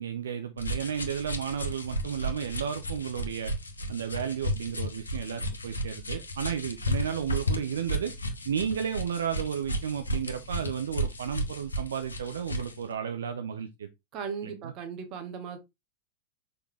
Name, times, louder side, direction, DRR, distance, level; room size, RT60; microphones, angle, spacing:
voice 1, 0.0-3.5 3.9-8.1 8.5-13.9 14.4-14.7, right 8 dB, 65° right, 0.6 m, -33 dB
sound 1, 0.6-12.8, equal, 75° left, 1.1 m, -33 dB
voice 2, 14.1-15.6, right 6 dB, 40° right, 1.6 m, -37 dB
6.7 x 4.2 x 3.3 m
figure-of-eight pair, 90°, 0 cm